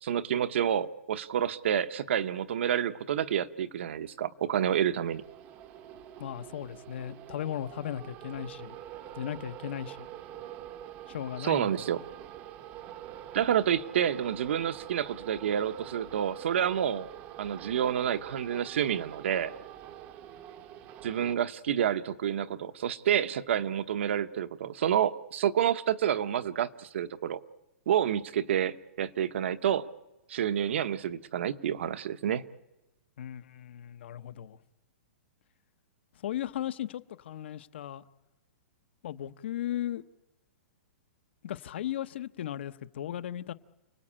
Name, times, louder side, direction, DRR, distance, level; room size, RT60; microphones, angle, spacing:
voice 1, 0.0-5.2 11.4-12.0 13.3-17.1 17.4-19.5 21.0-27.4 27.9-29.9 30.3-32.5, right 9 dB, 55° right, 1.0 m, -29 dB
sound 1, 5.1-21.3, right 11 dB, 20° right, 0.8 m, -46 dB
voice 2, 6.2-8.7 9.2-10.1 11.1-11.9 33.2-34.6 36.2-38.0 39.0-40.0 41.4-43.5, left 11 dB, 50° left, 0.9 m, -36 dB
29.5 x 19.0 x 8.8 m
hypercardioid pair, 175°, 8 cm